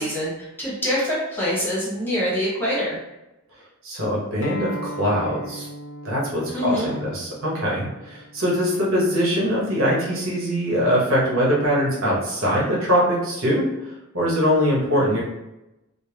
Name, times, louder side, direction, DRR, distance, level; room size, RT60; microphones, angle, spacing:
voice 1, 0.0-3.0 6.5-6.9, equal, 10° left, -7 dB, 1.2 m, -25 dB
voice 2, 3.8-5.7 6.0-15.2, equal, 60° right, -5 dB, 1.1 m, -22 dB
Acoustic guitar, 4.4-9.6, equal, 60° left, 0.4 m, -38 dB
4.2 x 2.1 x 3.4 m, 0.95 s
head